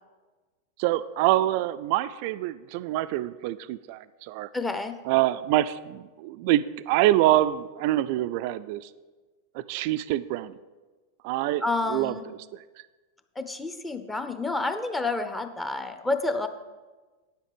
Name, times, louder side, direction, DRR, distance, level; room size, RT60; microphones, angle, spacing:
voice 1, 0.8-4.5 5.1-8.9 9.5-10.6 11.2-12.2, right 15 dB, 45° right, 15 dB, 0.3 m, -25 dB
voice 2, 4.5-5.0 11.6-12.2 13.4-16.5, left 2 dB, 10° left, 8 dB, 0.6 m, -29 dB
9.2 x 7.4 x 5.1 m, 1.3 s
figure-of-eight pair, 90°, 0 cm